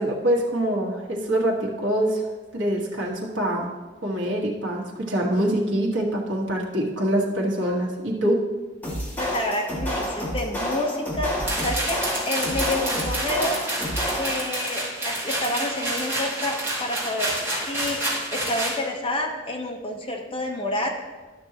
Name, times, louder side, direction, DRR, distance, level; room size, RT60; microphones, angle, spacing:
voice 1, 0.0-2.3 2.5-3.7 4.0-8.4, right 1 dB, 75° right, -2 dB, 1.5 m, -24 dB
sound 1, 8.8-14.5, equal, 10° left, 2.1 m, -30 dB
voice 2, 9.2-13.6 14.1-18.0 18.3-20.9, left 1 dB, 30° left, 0 dB, 1.0 m, -29 dB
sound 2, 11.5-18.8, right 1 dB, 15° right, 2.5 m, -28 dB
12.0 x 6.1 x 2.9 m, 1.3 s
head